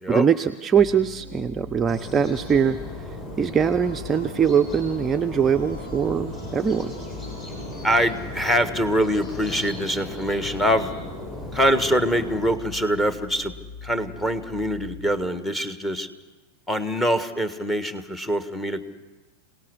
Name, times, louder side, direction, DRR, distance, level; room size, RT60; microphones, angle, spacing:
voice 1, 0.1-3.0 3.4-6.9, right 7 dB, 20° right, 7 dB, 0.6 m, -22 dB
sound 1, 0.7-15.2, left 3 dB, 45° left, 2.2 m, -41 dB
sound 2, 1.9-12.6, left 1 dB, 25° left, 7.1 m, -37 dB
sound 3, 3.8-9.8, left 2 dB, 65° left, 3.9 m, -46 dB
voice 2, 7.8-10.9 11.5-13.5 13.8-16.1 16.7-18.8, equal, 10° left, 10 dB, 1.5 m, -24 dB
26.5 x 18.0 x 6.4 m, 1.2 s
figure-of-eight pair, 90°, 0 cm